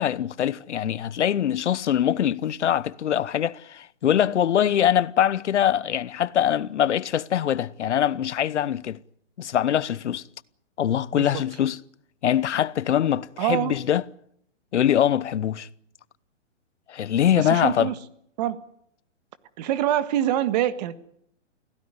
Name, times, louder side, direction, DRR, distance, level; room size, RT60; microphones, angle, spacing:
voice 1, 0.0-9.0 9.4-10.2 10.8-11.8 12.2-14.0 14.7-15.7 16.9-17.9, left 10 dB, 70° left, 1.1 m, -23 dB
voice 2, 11.1-11.4 13.4-13.8 17.4-18.0 18.4-18.6 19.6-20.9, right 11 dB, 35° right, 1.6 m, -25 dB
23.5 x 17.0 x 9.7 m
hypercardioid pair, 155°, 37 cm